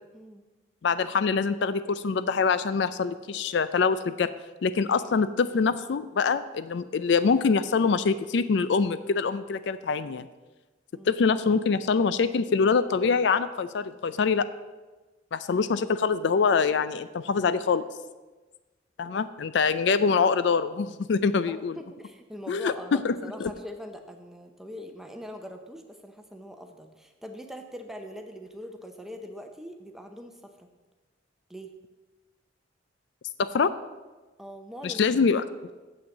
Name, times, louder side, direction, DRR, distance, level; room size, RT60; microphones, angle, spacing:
voice 1, 0.8-4.3 4.6-10.3 11.1-14.5 15.3-17.8 19.0-21.8 22.5-23.1 23.4-23.5 33.4-33.7 34.8-35.7, left 5 dB, 65° left, 14 dB, 0.4 m, -24 dB
voice 2, 19.0-19.5 21.5-30.7 31.5-31.8 34.4-35.2, equal, ahead, 5 dB, 0.7 m, -42 dB
7.8 x 6.2 x 7.1 m, 1.2 s
head